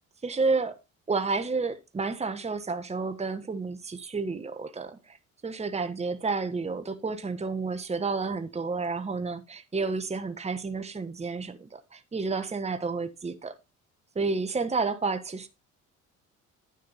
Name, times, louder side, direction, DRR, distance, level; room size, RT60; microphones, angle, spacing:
voice 1, 0.2-0.8 1.1-5.2 5.4-13.6 14.1-15.5, right 4 dB, 15° right, 1.1 m, -30 dB
10.0 x 6.5 x 4.0 m
hypercardioid pair, 55°, 42 cm